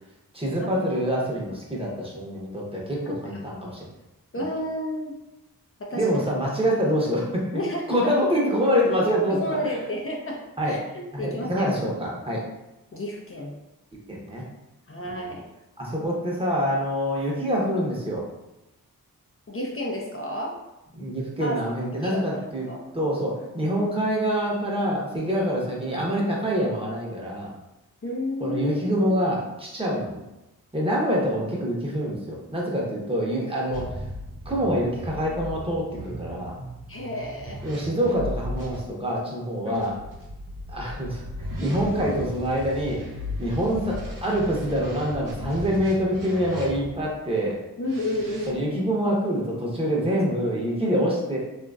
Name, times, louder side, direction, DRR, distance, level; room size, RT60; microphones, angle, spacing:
voice 1, 0.3-3.9 5.9-7.6 7.9-9.7 10.6-10.8 11.1-12.4 14.1-14.5 15.0-15.2 15.8-18.3 21.0-22.7 22.9-27.5 28.4-30.2 30.7-33.8 34.4-36.6 37.6-39.9 40.7-43.0 43.4-47.6 48.5-51.4, equal, 15° right, -3 dB, 0.9 m, -26 dB
voice 2, 3.0-3.4 4.3-5.1 5.8-6.2 7.5-8.1 9.3-11.7 12.9-13.5 14.9-15.5 19.5-20.6 21.4-21.7 21.9-22.8 28.0-28.6 29.0-29.1 33.5-33.7 36.9-37.6 39.7-39.9 47.8-48.6, left 1 dB, 40° left, -1 dB, 0.5 m, -31 dB
sound 1, 33.7-38.8 39.7-47.1 47.8-48.5, left 1 dB, 60° right, 0.8 m, -36 dB
2.8 x 2.6 x 2.3 m, 0.97 s
cardioid pair, 45°, 36 cm